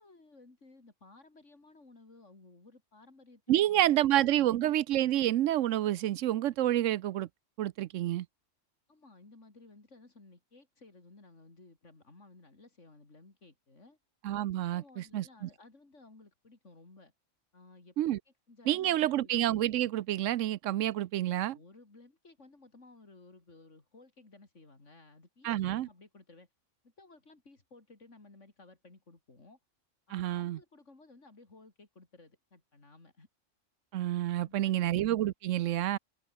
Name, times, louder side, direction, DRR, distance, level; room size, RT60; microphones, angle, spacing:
voice 1, 0.0-4.6 8.9-14.0 14.7-17.1 17.5-18.0 18.3-19.3 21.3-26.5 26.8-29.6 30.1-33.3 34.4-34.9, left 3 dB, 70° left, 4.1 m, -57 dB
voice 2, 3.5-7.3 7.6-8.3 14.2-15.5 18.0-18.2 18.7-21.6 25.4-25.9 30.1-30.6 33.9-36.0, right 13 dB, 80° right, 0.9 m, -29 dB
omnidirectional pair, 1.3 m